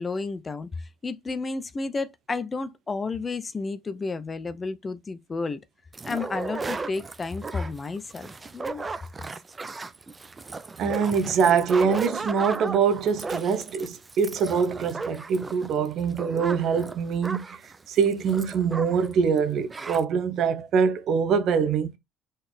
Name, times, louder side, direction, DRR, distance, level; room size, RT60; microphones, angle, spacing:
voice 1, 0.0-5.6 6.0-8.8, left 3 dB, 30° left, 0.6 m, -32 dB
sound 1, 5.9-19.1 19.4-19.5 19.7-20.0, right 3 dB, 25° right, 0.6 m, -36 dB
voice 2, 10.8-21.9, right 6 dB, 60° right, 0.8 m, -24 dB
4.1 x 3.9 x 3.3 m
hypercardioid pair, 55°, 0 cm